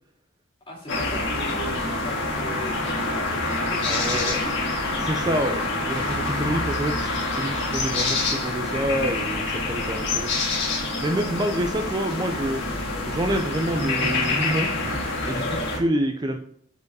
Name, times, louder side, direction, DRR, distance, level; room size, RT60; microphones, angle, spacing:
voice 1, 0.7-4.6, left 1 dB, 25° left, -3 dB, 2.1 m, -38 dB
sound 1, 0.9-15.8, left 2 dB, 60° left, 1.8 m, -26 dB
voice 2, 3.9-4.4 5.0-10.3 11.0-12.6 13.1-14.7 15.2-16.4, right 1 dB, 20° right, 5 dB, 0.4 m, -27 dB
5.0 x 4.7 x 4.6 m, 0.66 s
head